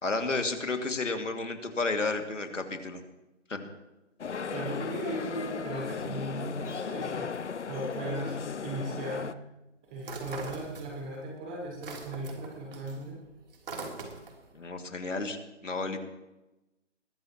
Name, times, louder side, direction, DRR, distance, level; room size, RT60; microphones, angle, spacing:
voice 1, 0.0-3.0 3.5-3.6 14.5-16.0, left 3 dB, 90° left, 5 dB, 2.5 m, -32 dB
sound 1, 4.2-9.3, left 6 dB, 70° left, 0.9 m, -36 dB
voice 2, 4.5-7.3 7.7-9.3 9.9-13.2, right 1 dB, 5° right, 0 dB, 0.9 m, -37 dB
sound 2, 10.0-11.2 11.5-14.5, right 3 dB, 50° right, 3.5 m, -42 dB
21.0 x 15.0 x 3.1 m, 0.99 s
figure-of-eight pair, 160°, 36 cm